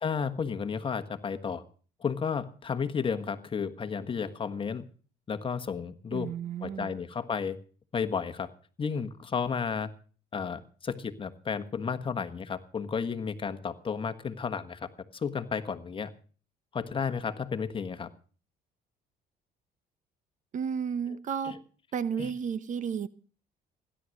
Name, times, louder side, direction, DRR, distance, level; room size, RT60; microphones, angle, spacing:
voice 1, 0.0-1.6 2.0-4.8 5.3-6.3 6.6-7.6 7.9-8.5 8.8-9.9 10.3-16.1 16.7-18.1 21.5-21.6 22.2-22.3, left 6 dB, 30° left, 10 dB, 1.4 m, -32 dB
voice 2, 6.1-6.9 20.5-21.6 21.9-23.1, right 7 dB, 50° right, 16 dB, 1.0 m, -32 dB
16.0 x 11.0 x 6.4 m, 0.41 s
cardioid pair, 110°, 17 cm